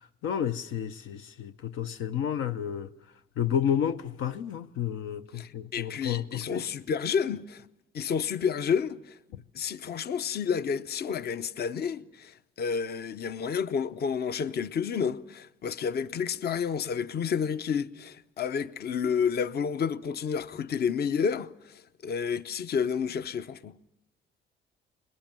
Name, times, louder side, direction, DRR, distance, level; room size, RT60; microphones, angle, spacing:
voice 1, 0.0-2.9 3.4-6.7, left 9 dB, 85° left, 0.7 m, -31 dB
voice 2, 5.3-7.7 7.9-9.2 9.5-23.7, left 6 dB, 55° left, 0.7 m, -30 dB
21.5 x 20.5 x 7.5 m
cardioid pair, 90°, 20 cm